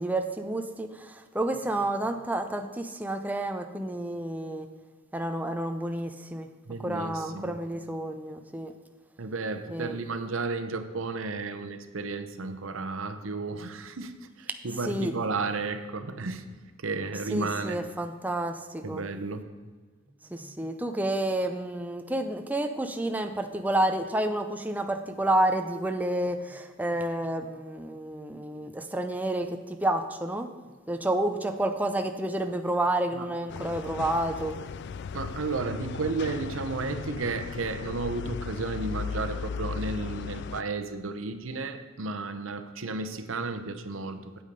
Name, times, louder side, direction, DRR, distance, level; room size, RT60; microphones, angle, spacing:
voice 1, 0.0-4.7 5.1-6.5 6.8-8.7 9.7-10.0 14.8-15.1 17.3-19.0 20.3-30.5 30.9-34.5, right 1 dB, 10° right, 5 dB, 0.5 m, -30 dB
voice 2, 6.7-7.6 9.2-16.5 16.8-17.8 18.8-19.4 33.1-33.3 35.1-44.4, right 3 dB, 80° right, 8 dB, 0.8 m, -33 dB
sound 1, 33.5-40.6, left 6 dB, 55° left, 0.3 m, -36 dB
8.5 x 8.4 x 5.3 m, 1.4 s
head